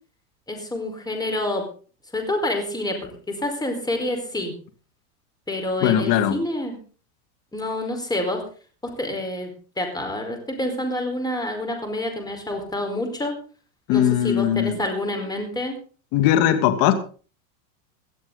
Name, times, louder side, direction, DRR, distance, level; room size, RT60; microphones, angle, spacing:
voice 1, 0.5-1.6 2.1-4.5 5.5-6.8 7.5-8.5 8.8-9.5 9.8-13.3 13.9-15.8, left 1 dB, 10° left, 4 dB, 4.7 m, -28 dB
voice 2, 5.8-6.4 13.9-14.8 16.1-16.9, left 11 dB, 55° left, 9 dB, 2.4 m, -19 dB
18.0 x 12.5 x 4.0 m, 0.39 s
supercardioid pair, 130°, 43 cm